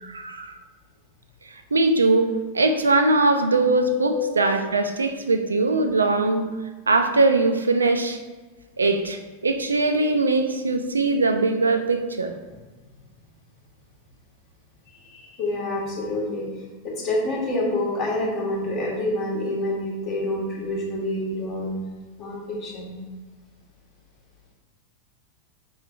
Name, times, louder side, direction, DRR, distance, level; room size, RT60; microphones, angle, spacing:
voice 1, 0.0-0.5 1.7-6.5 6.9-8.2 8.8-12.3, right 2 dB, 75° right, 7 dB, 0.3 m, -21 dB
voice 2, 4.0-4.3 15.0-16.4 16.8-21.7 22.2-22.9, left 1 dB, 35° left, -4 dB, 1.3 m, -27 dB
4.6 x 3.2 x 3.3 m, 1.3 s
figure-of-eight pair, 90°, 0 cm